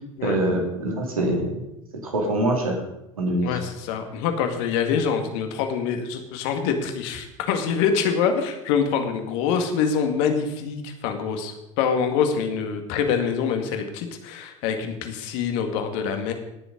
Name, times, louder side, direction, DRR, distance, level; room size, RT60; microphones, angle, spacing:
voice 1, 0.2-1.7 2.0-2.8 3.2-3.5, right 1 dB, 80° right, 2 dB, 2.8 m, -24 dB
voice 2, 3.4-16.3, left 6 dB, 60° left, 5 dB, 2.2 m, -25 dB
18.0 x 7.1 x 5.3 m, 0.90 s
figure-of-eight pair, 75°, 18 cm